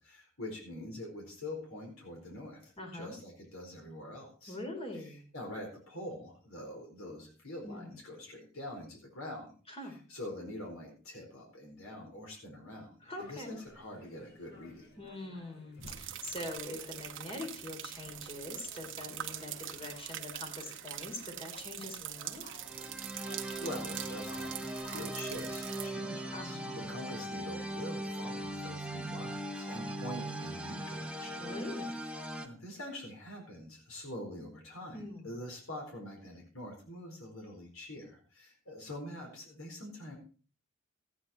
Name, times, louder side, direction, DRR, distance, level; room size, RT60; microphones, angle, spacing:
voice 1, 0.0-4.6 4.9-9.5 10.1-12.9 13.2-15.0 23.2-31.5 32.4-40.2, left 1 dB, 80° left, 0 dB, 4.5 m, -45 dB
voice 2, 2.8-3.1 4.5-5.2 7.6-8.0 9.7-10.0 13.0-13.6 15.0-22.4 26.3-26.7 31.4-31.9 34.9-35.3, left 2 dB, 30° left, 3 dB, 3.1 m, -43 dB
sound 1, 13.1-26.5, left 2 dB, 50° left, 2.6 m, -55 dB
sound 2, 15.8-25.9, right 12 dB, 65° right, 1.0 m, -43 dB
sound 3, 22.5-32.5, right 1 dB, 5° right, 1.0 m, -39 dB
14.5 x 9.4 x 4.4 m, 0.39 s
head